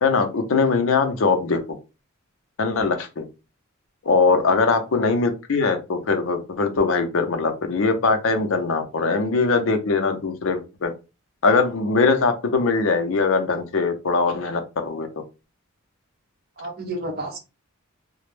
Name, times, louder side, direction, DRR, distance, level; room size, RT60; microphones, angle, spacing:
voice 1, 0.0-1.6 2.6-3.2 4.0-10.9 11.4-15.1, left 4 dB, 65° left, 7 dB, 0.5 m, -21 dB
voice 2, 16.6-17.4, right 2 dB, 45° right, 3 dB, 0.6 m, -31 dB
2.1 x 2.0 x 3.0 m, 0.29 s
head